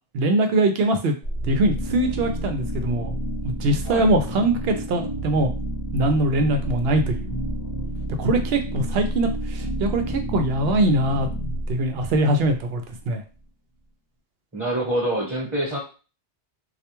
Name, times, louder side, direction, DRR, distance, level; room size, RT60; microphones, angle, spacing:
voice 1, 0.1-1.1 1.4-3.1 3.4-5.5 5.9-7.4 8.2-11.3 11.7-13.2, right 2 dB, 65° right, 6 dB, 0.7 m, -22 dB
sound 1, 1.2-13.0, right 1 dB, 50° left, 1.0 m, -30 dB
voice 2, 14.5-15.8, right 1 dB, 15° right, -6 dB, 1.0 m, -25 dB
2.3 x 2.2 x 2.9 m, 0.34 s
omnidirectional pair, 1.1 m